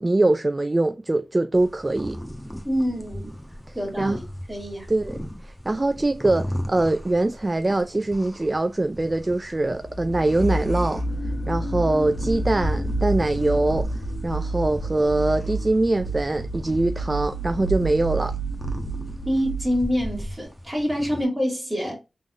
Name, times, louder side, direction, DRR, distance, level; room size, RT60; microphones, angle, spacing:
voice 1, 0.0-2.2 3.7-4.2 4.9-11.0 11.5-13.9 14.2-18.3, right 2 dB, 35° right, 0.3 m, -23 dB
sound 1, 1.5-21.2, equal, 5° left, 1.1 m, -38 dB
voice 2, 2.6-3.3 3.7-4.2 4.5-4.9 19.3-22.0, equal, 10° right, 2.4 m, -26 dB
sound 2, 9.7-20.3, right 2 dB, 70° left, 1.6 m, -29 dB
3.8 x 3.6 x 2.4 m
cardioid pair, 50°, 0 cm